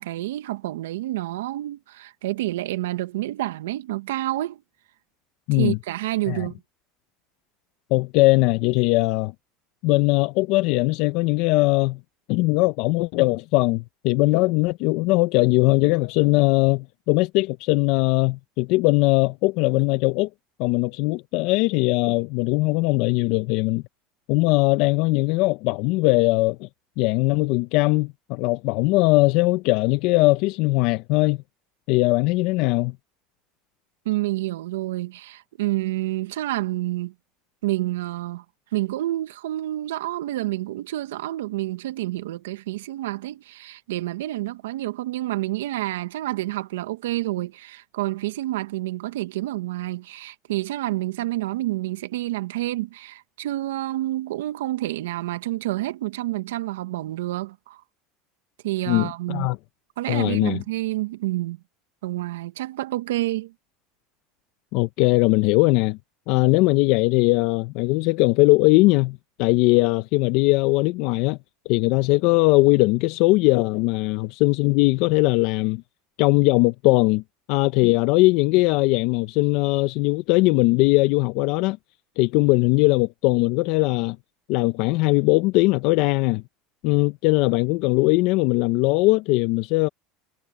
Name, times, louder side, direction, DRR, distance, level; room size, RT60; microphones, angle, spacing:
voice 1, 0.0-4.6 5.5-6.6 34.0-37.1 37.6-38.4 38.7-57.8 58.6-59.5 60.0-61.6 62.0-63.5, right 16 dB, 85° right, 1.7 m, -28 dB
voice 2, 5.5-5.8 6.3-6.5 7.9-9.3 9.8-12.0 12.3-20.3 20.6-23.8 24.3-26.7 27.0-31.4 31.9-32.9 58.9-59.6 60.1-60.6 64.7-66.0 66.3-71.4 71.6-75.8 76.2-77.2 77.5-81.8 82.2-84.2 84.5-86.4 86.8-89.9, left 22 dB, 65° left, 0.9 m, -20 dB
hypercardioid pair, 95°, 0 cm